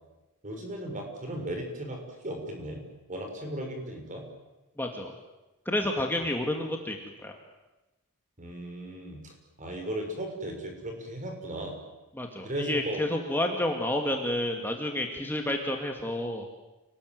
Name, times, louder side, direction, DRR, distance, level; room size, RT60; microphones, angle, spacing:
voice 1, 0.4-2.8 3.1-4.2 6.2-6.3 8.4-9.2 9.6-11.8 12.4-13.0, right 1 dB, 35° right, 3 dB, 6.6 m, -36 dB
voice 2, 4.8-5.1 5.7-7.3 12.1-16.4, left 1 dB, 10° left, 2 dB, 2.3 m, -30 dB
28.5 x 20.0 x 9.6 m, 1.1 s
head